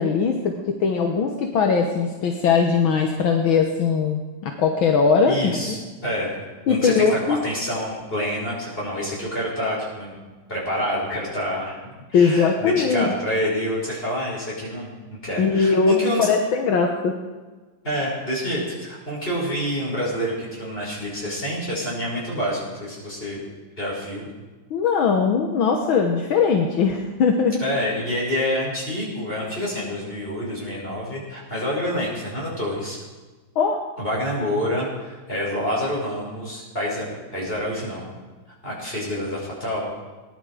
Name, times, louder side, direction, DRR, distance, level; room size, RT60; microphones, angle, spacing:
voice 1, 0.0-5.8 6.7-7.4 12.1-13.1 15.4-17.1 24.7-27.6 33.6-33.8, left 5 dB, 75° left, 3 dB, 1.9 m, -20 dB
voice 2, 5.2-5.8 6.0-6.4 6.7-10.2 10.5-16.3 17.8-23.4 23.8-24.3 27.6-33.0 34.0-37.0 37.3-38.1 38.6-39.9, equal, 25° left, -5 dB, 6.2 m, -27 dB
21.0 x 11.0 x 5.0 m, 1.3 s
omnidirectional pair, 2.3 m